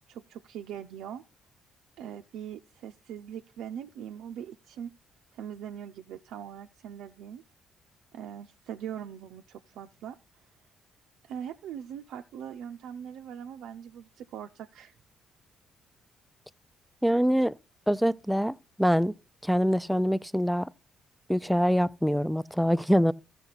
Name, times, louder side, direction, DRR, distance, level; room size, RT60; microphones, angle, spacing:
voice 1, 0.1-1.2 2.0-4.9 5.3-7.4 8.1-10.1 11.2-15.0, right 9 dB, 75° right, 0.5 m, -41 dB
voice 2, 17.0-17.5 17.9-19.1 19.4-20.7 21.3-23.1, equal, ahead, 0.5 m, -24 dB
14.0 x 5.9 x 4.1 m
hypercardioid pair, 55°, 0 cm